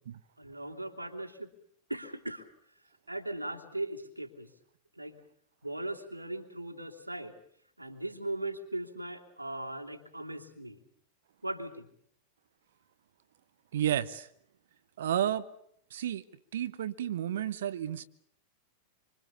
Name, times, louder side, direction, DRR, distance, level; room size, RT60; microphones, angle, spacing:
voice 1, 0.4-1.5 1.9-2.5 3.1-4.5 5.0-5.2 5.6-7.3 7.8-10.8 11.4-11.9, right 1 dB, 85° right, 2.9 m, -38 dB
voice 2, 13.7-14.3 15.0-15.4 15.9-16.2 16.5-18.0, right 10 dB, 60° right, 1.0 m, -31 dB
26.5 x 25.5 x 7.1 m
figure-of-eight pair, 90°, 0 cm